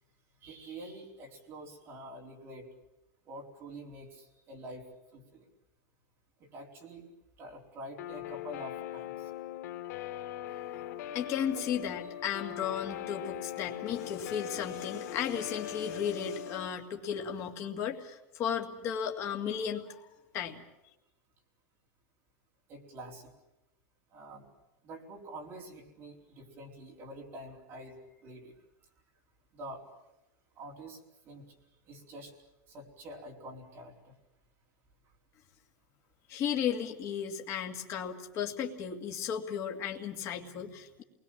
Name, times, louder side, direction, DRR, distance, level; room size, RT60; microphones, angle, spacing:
voice 1, 0.4-2.7 3.3-5.5 6.4-7.1 7.4-9.3 11.5-11.6 22.7-23.3 24.1-24.5 24.8-28.5 29.5-29.9 30.5-31.6 31.9-32.4 32.7-34.1, right 1 dB, 25° right, 0 dB, 4.5 m, -47 dB
Guitar, 8.0-16.7, left 12 dB, 85° left, 2.3 m, -40 dB
voice 2, 11.1-20.1 20.3-20.6 36.3-41.0, left 8 dB, 30° left, 2 dB, 2.2 m, -35 dB
28.5 x 21.0 x 7.4 m, 0.93 s
supercardioid pair, 175°, 9 cm